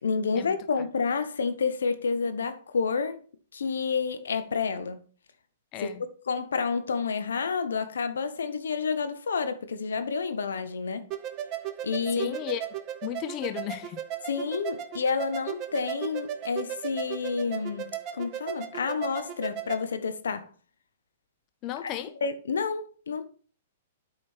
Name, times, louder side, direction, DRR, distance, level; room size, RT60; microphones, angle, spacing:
voice 1, 0.0-3.2 3.5-5.0 5.8-5.9 6.3-11.1 11.8-12.4 14.3-20.5 21.8-21.9 22.2-23.2, left 5 dB, 70° left, 0.9 m, -29 dB
voice 2, 5.7-6.0 12.2-12.6 13.0-14.0 21.6-22.2, left 11 dB, 35° left, 0.7 m, -34 dB
sound 1, 11.1-19.8, right 10 dB, 35° right, 0.8 m, -36 dB
8.7 x 5.0 x 4.4 m
figure-of-eight pair, 115°, 0 cm